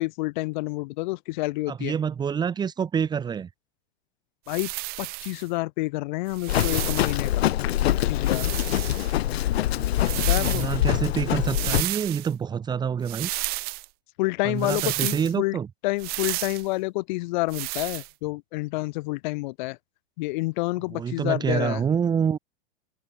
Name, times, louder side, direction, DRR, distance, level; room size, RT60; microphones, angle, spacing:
voice 1, 0.0-1.9 4.5-4.7 5.0-7.5 7.8-8.5 10.2-10.7 14.2-15.6 15.8-19.8 20.2-21.8, left 22 dB, 50° left, 6.3 m, -29 dB
voice 2, 1.7-3.5 9.8-13.3 14.4-15.7 20.9-22.4, right 7 dB, 15° right, 2.8 m, -27 dB
sound 1, 4.5-5.4 6.3-7.3 8.2-9.2 9.9-10.8 11.4-12.3 13.1-13.9 14.6-15.3 16.0-16.7 17.5-18.1, right 23 dB, 30° right, 1.6 m, -32 dB
Livestock farm animals working animals, 6.5-11.8, left 13 dB, 80° left, 2.4 m, -24 dB
supercardioid pair, 170°, 31 cm